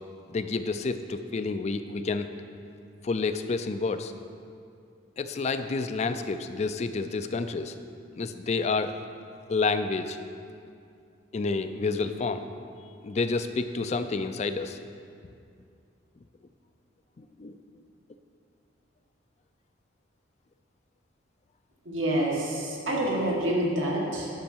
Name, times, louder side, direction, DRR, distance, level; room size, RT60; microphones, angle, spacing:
voice 1, 0.3-2.3 3.0-4.1 5.2-7.7 8.2-8.9 9.5-10.2 11.3-12.5 13.0-14.8 17.2-17.6, left 4 dB, 35° left, 10 dB, 0.4 m, -29 dB
voice 2, 21.9-24.3, right 1 dB, 85° right, -3 dB, 1.9 m, -27 dB
10.5 x 6.3 x 4.5 m, 2.4 s
head